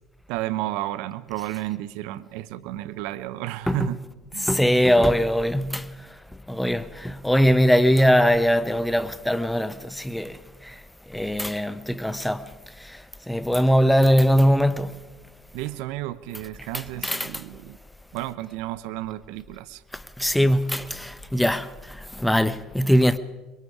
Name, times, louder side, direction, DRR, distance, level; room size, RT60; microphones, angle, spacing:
voice 1, 0.3-4.0 4.3-4.6 15.5-17.8 18.1-19.8, right 16 dB, 70° right, 0.9 m, -32 dB
voice 2, 4.4-5.9 6.5-10.7 11.1-12.4 12.8-13.0 13.3-15.0 16.7-17.4 19.9-23.2, equal, 5° left, 0.9 m, -21 dB
24.0 x 22.5 x 4.9 m
hypercardioid pair, 70°, 0 cm